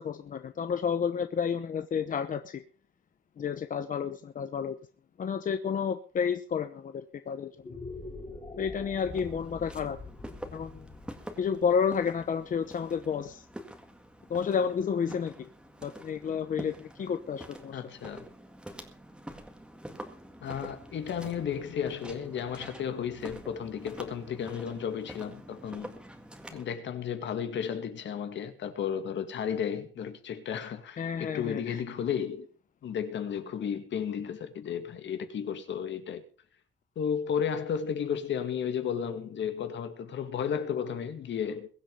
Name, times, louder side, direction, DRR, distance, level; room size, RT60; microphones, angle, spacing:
voice 1, 0.0-2.6 3.4-4.8 5.2-7.8 8.6-10.0 10.5-10.9 11.4-13.4 14.3-15.5 15.8-17.8 31.0-31.8, left 7 dB, 40° left, 0.9 m, -31 dB
sound 1, 7.5-13.9, left 3 dB, 20° left, 3.1 m, -45 dB
Walk footsteps, 9.0-26.7, right 1 dB, 5° right, 1.9 m, -47 dB
voice 2, 17.7-18.3 20.4-26.0 26.5-32.5 32.8-36.2 37.0-41.7, left 8 dB, 60° left, 2.2 m, -33 dB
22.0 x 8.2 x 5.5 m
wide cardioid pair, 175°, 21 cm